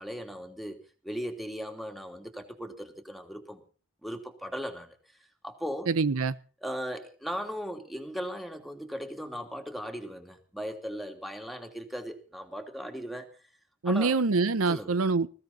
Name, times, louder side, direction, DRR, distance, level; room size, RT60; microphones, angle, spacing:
voice 1, 0.0-3.6 4.0-4.9 5.4-5.9 6.6-13.3 13.8-14.1 14.7-15.0, equal, ahead, 2.8 m, -38 dB
voice 2, 5.9-6.3 13.8-15.3, right 4 dB, 85° right, 0.8 m, -25 dB
21.0 x 15.5 x 4.2 m
head